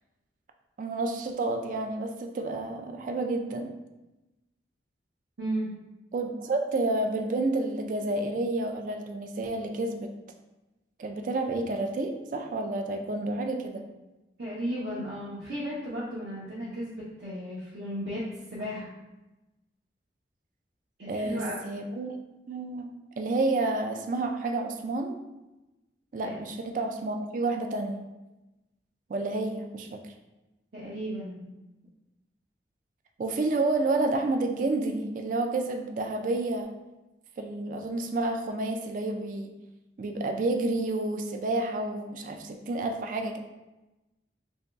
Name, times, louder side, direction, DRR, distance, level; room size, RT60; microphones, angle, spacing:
voice 1, 0.8-3.7 6.1-10.1 11.0-13.9 21.1-22.2 22.5-22.9 23.2-25.2 26.1-28.1 29.1-29.9 33.2-36.7 37.4-39.5 40.0-43.4, right 2 dB, 45° right, 4 dB, 0.3 m, -30 dB
voice 2, 5.4-5.7 14.4-18.2 18.5-18.9 21.0-21.5 26.2-26.4 30.7-31.5, equal, 65° right, -9 dB, 0.8 m, -34 dB
2.9 x 2.7 x 3.4 m, 1.0 s
head